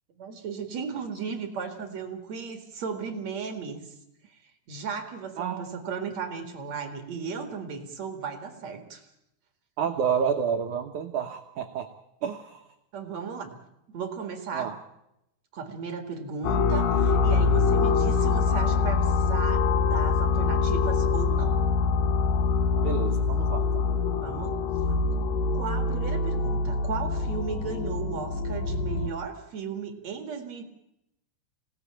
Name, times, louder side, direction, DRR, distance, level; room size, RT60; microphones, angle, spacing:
voice 1, 0.2-3.9 4.3-4.4 4.7-9.0 12.9-13.6 13.9-14.7 15.5-21.6 24.2-24.5 25.5-30.6, right 6 dB, 50° right, 6 dB, 2.4 m, -35 dB
voice 2, 5.4-5.8 9.8-11.9 12.2-12.7 14.5-14.8 22.8-23.9 24.9-25.0, right 7 dB, 85° right, 4 dB, 1.7 m, -30 dB
sound 1, 16.4-29.1, left 5 dB, 65° left, 2.4 m, -24 dB
26.5 x 18.5 x 8.8 m, 0.86 s
omnidirectional pair, 5.4 m